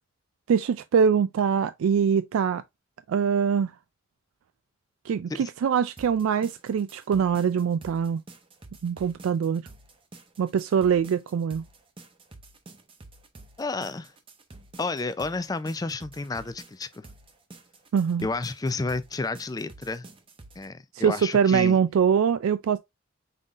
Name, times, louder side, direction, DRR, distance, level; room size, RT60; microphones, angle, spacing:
voice 1, 0.5-2.6 3.1-3.7 5.1-8.2 8.8-9.7 10.4-11.6 17.9-18.3 20.9-22.8, right 7 dB, 85° right, 0.3 m, -23 dB
sound 1, 6.0-20.7, right 2 dB, 25° right, 0.7 m, -49 dB
voice 2, 13.6-14.1 14.8-17.0 18.2-20.1 20.6-21.8, left 3 dB, 20° left, 0.4 m, -31 dB
5.5 x 3.8 x 2.4 m
head